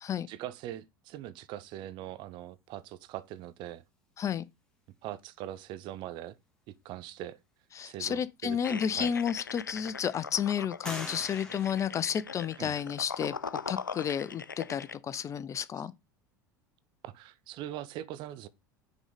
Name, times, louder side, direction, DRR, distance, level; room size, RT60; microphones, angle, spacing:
voice 1, 0.3-3.8 5.0-6.4 6.7-7.4 7.8-9.1 12.6-12.7 17.0-18.5, right 13 dB, 50° right, 0.7 m, -41 dB
voice 2, 7.7-13.3 13.7-15.9, left 8 dB, 30° left, 0.5 m, -31 dB
sound 1, 8.6-14.9, left 6 dB, 85° left, 0.4 m, -41 dB
sound 2, 8.6-8.7 9.3-9.9 10.8-12.8, left 1 dB, 5° left, 2.1 m, -45 dB
6.1 x 3.9 x 5.1 m
figure-of-eight pair, 75°, 10 cm